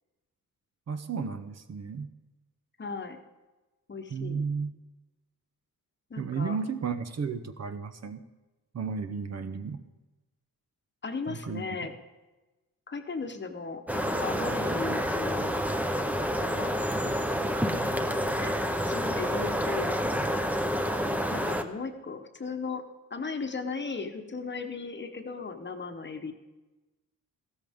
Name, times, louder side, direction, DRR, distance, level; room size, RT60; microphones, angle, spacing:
voice 1, 0.9-2.1 4.1-4.7 6.2-8.2 8.7-9.8 11.3-11.6 14.9-15.0, right 5 dB, 50° right, 10 dB, 0.8 m, -33 dB
voice 2, 2.8-3.2 3.9-4.4 6.1-6.6 11.0-11.9 12.9-15.6 16.4-16.8 18.4-18.6 18.8-20.0 21.3-22.8 23.1-26.3, left 4 dB, 30° left, 6 dB, 1.1 m, -36 dB
sound 1, 13.9-21.6, equal, 5° right, 0.7 m, -28 dB
15.0 x 13.0 x 3.6 m, 1.1 s
cardioid pair, 95°, 34 cm